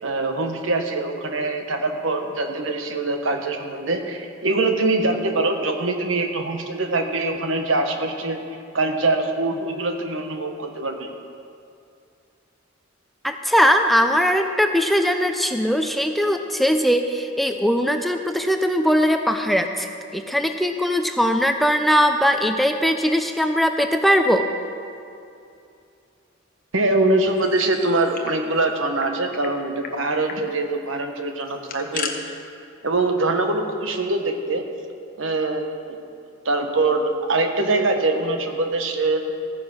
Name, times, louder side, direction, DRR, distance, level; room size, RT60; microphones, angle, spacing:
voice 1, 0.0-8.4 8.7-11.1 26.7-32.1 32.8-34.6 35.2-36.0 36.4-39.2, right 2 dB, 75° right, 5 dB, 1.3 m, -23 dB
voice 2, 13.2-19.9 20.1-24.5, equal, ahead, 5 dB, 0.5 m, -20 dB
sound 1, 27.3-28.4 28.6-28.7 29.0-29.5 29.8-29.9 30.3-30.5 31.4-32.1, left 6 dB, 45° left, 1.2 m, -34 dB
14.5 x 9.8 x 6.3 m, 2.5 s
head